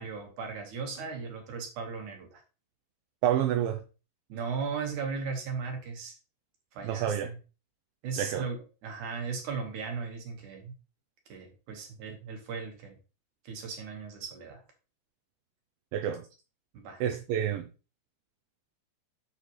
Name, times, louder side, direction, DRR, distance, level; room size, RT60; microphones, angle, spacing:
voice 1, 0.0-2.4 4.3-6.2 6.7-7.4 8.0-10.7 11.3-13.0 13.4-14.6 16.7-17.0, right 5 dB, 60° right, 2.7 m, -37 dB
voice 2, 3.2-3.8 6.8-7.3 8.2-8.5 15.9-16.2 17.0-17.7, right 10 dB, 80° right, 2.3 m, -28 dB
7.5 x 6.6 x 3.1 m
omnidirectional pair, 4.6 m